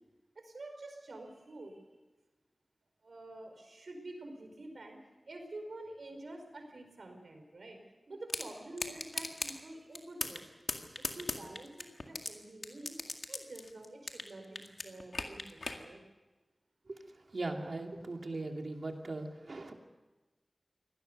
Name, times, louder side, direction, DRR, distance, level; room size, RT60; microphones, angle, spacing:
voice 1, 0.3-1.8 3.0-5.0 5.3-7.8 8.1-10.4 11.1-13.0 13.3-16.0, right 2 dB, 90° right, 4 dB, 4.6 m, -48 dB
sound 1, 8.3-8.5 8.8-9.5 9.9-10.4 10.7-12.3 12.6-14.3 14.6-15.8, left 3 dB, 80° left, 2.0 m, -37 dB
voice 2, 16.9-19.7, right 2 dB, 70° right, 3 dB, 2.6 m, -39 dB
24.5 x 18.5 x 6.7 m, 1.2 s
wide cardioid pair, 55°, 0 cm